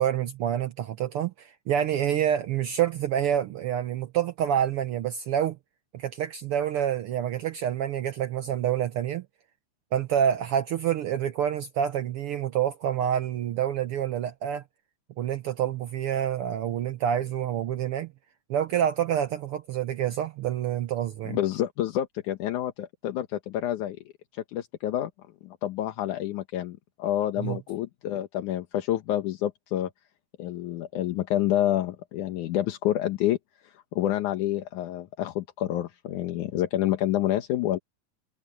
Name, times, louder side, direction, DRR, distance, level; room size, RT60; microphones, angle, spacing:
voice 1, 0.0-5.6 5.9-9.2 9.9-14.6 15.2-18.1 18.5-21.4 27.4-27.6, right 10 dB, 75° right, 1.3 m, -27 dB
voice 2, 21.3-24.0 24.3-25.1 25.4-29.9 30.4-33.4 33.6-37.8, left 12 dB, 80° left, 2.6 m, -28 dB
omnidirectional pair, 3.5 m